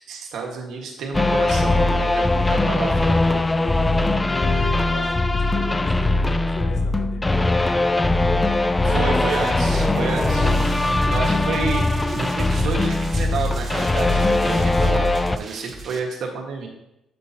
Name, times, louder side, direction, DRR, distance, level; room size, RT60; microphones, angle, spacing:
voice 1, 0.0-3.5 8.8-10.5 11.1-16.7, right 5 dB, 75° right, 1 dB, 1.5 m, -30 dB
sound 1, 1.1-15.4, left 2 dB, 15° left, 0.4 m, -20 dB
voice 2, 4.3-7.5, left 4 dB, 70° left, 2 dB, 1.3 m, -36 dB
sound 2, 9.2-16.0, right 4 dB, 45° right, 0.9 m, -34 dB
8.3 x 7.8 x 2.8 m, 0.87 s
cardioid pair, 90°, 0 cm